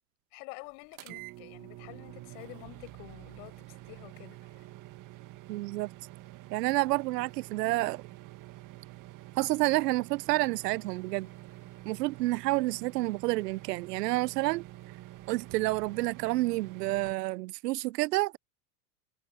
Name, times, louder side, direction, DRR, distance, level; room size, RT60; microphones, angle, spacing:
voice 1, 0.3-4.7, left 30 dB, 60° left, 5.5 m, -49 dB
sound 1, 0.9-17.1, right 17 dB, 40° right, 1.8 m, -48 dB
voice 2, 5.5-5.9 6.5-8.0 9.4-11.3 11.9-14.6 15.3-18.4, right 20 dB, 70° right, 0.7 m, -29 dB
hypercardioid pair, 110°, 49 cm